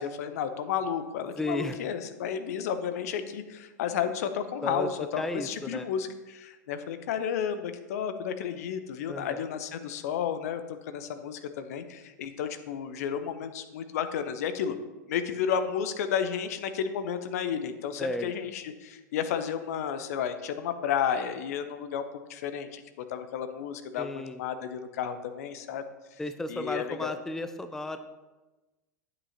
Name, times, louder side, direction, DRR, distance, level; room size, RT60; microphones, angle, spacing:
voice 1, 0.0-10.6 10.9-14.8 15.1-22.0 22.3-25.8 26.5-27.1, left 8 dB, 60° left, 9 dB, 0.7 m, -32 dB
voice 2, 1.4-1.8 4.6-4.9 5.2-5.9 9.1-9.4 18.0-18.3 24.0-24.4 26.2-28.0, left 1 dB, 5° left, 10 dB, 0.4 m, -33 dB
9.6 x 8.3 x 2.8 m, 1.1 s
figure-of-eight pair, 90°, 10 cm